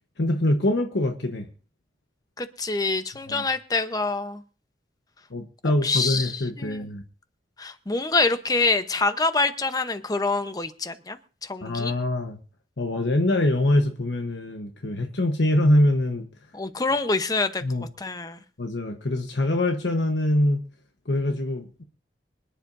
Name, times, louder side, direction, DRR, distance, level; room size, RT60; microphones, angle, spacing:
voice 1, 0.2-1.5 3.3-3.5 5.3-7.0 11.6-12.4 12.8-16.3 17.6-17.9 18.6-20.7 21.0-21.8, left 1 dB, 75° left, 5 dB, 1.1 m, -24 dB
voice 2, 2.4-4.4 5.8-6.3 6.6-6.8 7.6-11.2 11.5-11.9 16.5-17.6 18.0-18.4, left 3 dB, 20° left, 10 dB, 0.9 m, -25 dB
25.5 x 10.5 x 2.7 m, 0.37 s
head